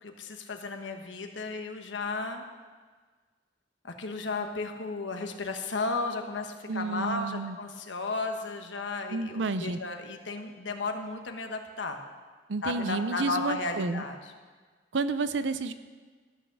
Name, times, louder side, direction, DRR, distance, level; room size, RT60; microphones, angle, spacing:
voice 1, 0.0-2.5 3.8-12.0 12.6-14.2, left 3 dB, 85° left, 5 dB, 1.2 m, -34 dB
voice 2, 6.7-7.6 9.1-9.8 12.5-14.0 14.9-15.7, right 3 dB, 80° right, 12 dB, 0.6 m, -30 dB
13.5 x 6.5 x 7.0 m, 1.5 s
head